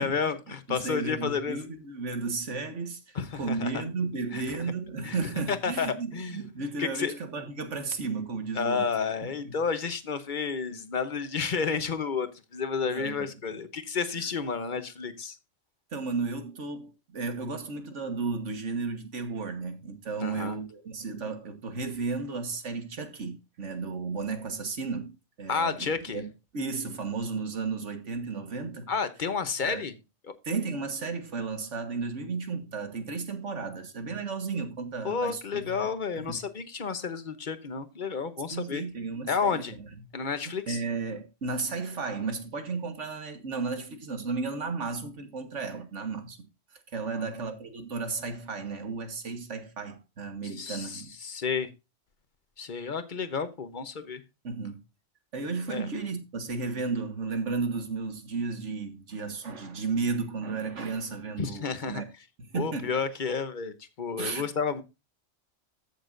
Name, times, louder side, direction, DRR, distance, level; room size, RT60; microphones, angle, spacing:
voice 1, 0.0-1.6 3.1-3.8 4.3-4.6 5.0-6.4 6.8-7.1 8.5-15.4 20.2-20.5 25.5-26.2 28.9-29.9 30.3-30.4 35.0-38.8 39.3-39.8 40.1-40.8 47.1-47.2 50.6-51.7 52.6-54.2 55.7-55.9 61.4-62.0 62.5-64.8, left 5 dB, 45° left, 1.1 m, -31 dB
voice 2, 0.7-8.9 9.4-9.5 12.8-13.3 15.9-25.1 25.4-26.2 26.5-28.9 29.6-29.8 30.4-35.9 36.2-36.4 38.5-39.8 40.4-46.4 46.9-51.1 54.4-54.8 55.3-62.0 62.4-63.0 64.2-64.4, right 4 dB, 80° right, 1.9 m, -33 dB
14.0 x 6.7 x 2.6 m
omnidirectional pair, 1.2 m